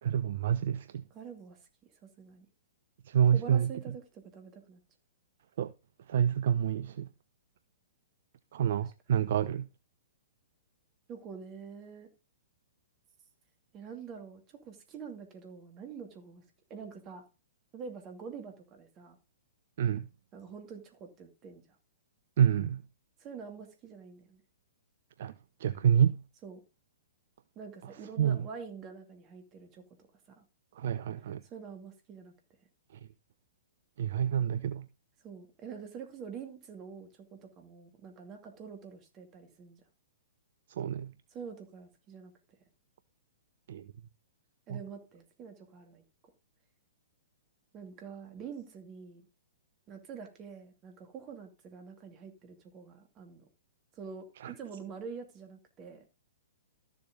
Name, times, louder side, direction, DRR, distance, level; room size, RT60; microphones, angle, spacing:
voice 1, 0.0-1.0 3.1-3.7 5.6-5.7 6.1-7.1 8.5-9.7 19.8-20.1 22.4-22.8 25.2-25.3 25.6-26.2 28.2-28.5 30.8-31.4 34.0-34.9 40.8-41.1 43.7-43.9 44.7-44.8 54.4-54.5, right 9 dB, 55° right, 0.5 m, -28 dB
voice 2, 1.1-2.5 3.3-4.8 11.1-12.1 13.7-16.4 16.7-17.2 17.7-19.2 20.3-21.6 23.2-24.4 26.4-26.6 27.6-29.8 30.4-30.5 31.4-32.3 35.2-39.8 41.3-42.3 44.7-46.0 47.7-49.3 49.9-53.4 54.0-56.0, right 6 dB, 25° right, 2.5 m, -46 dB
13.0 x 7.3 x 3.8 m
figure-of-eight pair, 115°, 0 cm